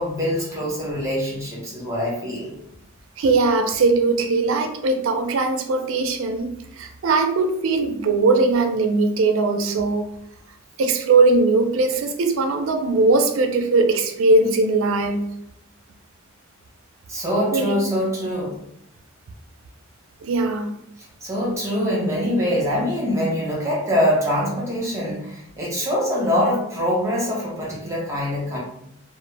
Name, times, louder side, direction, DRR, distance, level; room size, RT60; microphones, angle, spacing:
voice 1, 0.0-2.5 17.1-18.6 21.2-28.6, equal, 15° right, -4 dB, 0.7 m, -24 dB
voice 2, 3.2-10.1 10.8-15.2 17.5-17.8 20.2-20.7, right 3 dB, 70° right, 6 dB, 0.4 m, -20 dB
2.1 x 2.1 x 3.2 m, 0.77 s
head